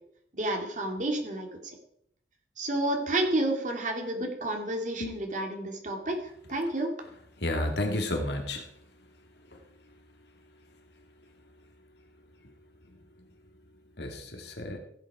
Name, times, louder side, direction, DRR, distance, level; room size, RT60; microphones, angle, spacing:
voice 1, 0.3-1.5 2.6-6.2 6.5-6.9, right 1 dB, 45° right, 3 dB, 2.5 m, -30 dB
voice 2, 7.4-8.6 14.0-14.8, left 1 dB, 65° left, 4 dB, 2.1 m, -31 dB
15.5 x 8.3 x 4.8 m, 0.69 s
head